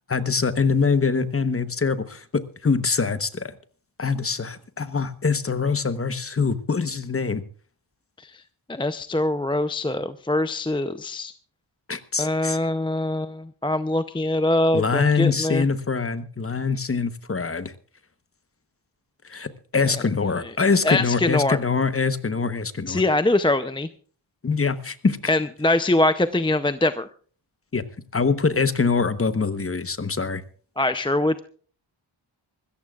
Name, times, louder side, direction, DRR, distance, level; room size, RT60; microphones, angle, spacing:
voice 1, 0.1-3.5 4.0-7.4 11.9-12.6 14.7-17.7 19.3-23.0 24.4-25.2 27.7-27.8 28.1-30.4, left 5 dB, 30° left, 12 dB, 1.0 m, -24 dB
voice 2, 8.7-11.3 12.2-15.7 20.4-20.5 20.8-21.6 22.9-23.9 25.3-27.1 30.8-31.4, left 2 dB, 10° left, 11 dB, 0.5 m, -23 dB
24.5 x 14.0 x 2.4 m, 0.43 s
wide cardioid pair, 140°, 49 cm